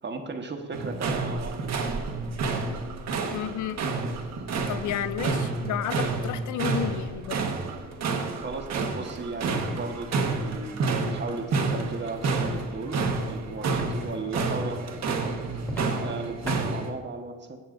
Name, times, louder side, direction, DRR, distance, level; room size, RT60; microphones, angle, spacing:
voice 1, 0.0-1.6 8.4-15.3 15.9-17.6, right 3 dB, 35° right, 1.4 m, -36 dB
sound 1, 0.7-16.9, right 3 dB, 60° right, 1.5 m, -29 dB
voice 2, 3.3-3.8 4.7-7.4, left 11 dB, 75° left, 0.6 m, -32 dB
Walk footsteps, 11.7-11.9 12.4-12.6 13.0-13.2 13.7-13.9 14.3-14.6 15.0-15.2 15.6-15.9 16.4-16.6, left 1 dB, 5° left, 3.0 m, -36 dB
16.0 x 7.5 x 2.6 m
cardioid pair, 90°, 30 cm